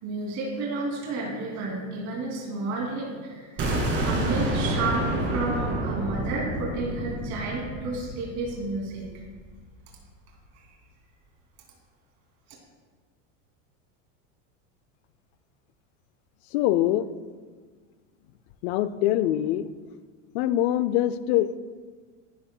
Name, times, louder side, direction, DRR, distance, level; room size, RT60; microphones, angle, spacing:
voice 1, 0.0-3.7 4.0-9.1, right 2 dB, 45° right, -2 dB, 2.7 m, -31 dB
sound 1, 3.6-9.4, right 1 dB, 30° right, 2.2 m, -29 dB
voice 2, 16.5-17.1 18.6-19.7 20.3-21.6, left 13 dB, 55° left, 14 dB, 0.5 m, -23 dB
11.5 x 9.6 x 2.2 m, 1.5 s
supercardioid pair, 140°, 38 cm